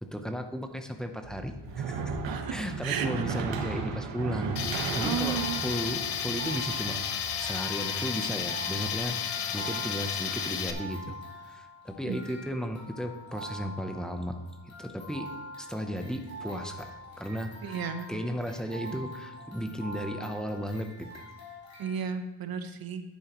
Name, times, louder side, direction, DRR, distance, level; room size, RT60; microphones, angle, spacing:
voice 1, 0.0-7.0 7.4-11.2 11.4-14.4 14.8-15.3 15.6-17.8 18.1-21.2, equal, ahead, 5 dB, 0.6 m, -35 dB
sound 1, 1.2-7.4, right 5 dB, 80° right, 1.4 m, -35 dB
voice 2, 2.8-3.2 5.0-5.6 12.0-12.2 17.6-18.1 21.8-23.0, right 7 dB, 55° right, 8 dB, 0.9 m, -33 dB
Tools, 4.6-10.7, left 8 dB, 65° left, 1.0 m, -32 dB
sound 2, 5.0-22.0, equal, 40° left, 3.6 m, -44 dB
11.0 x 9.7 x 3.0 m, 1.1 s
wide cardioid pair, 170°, 43 cm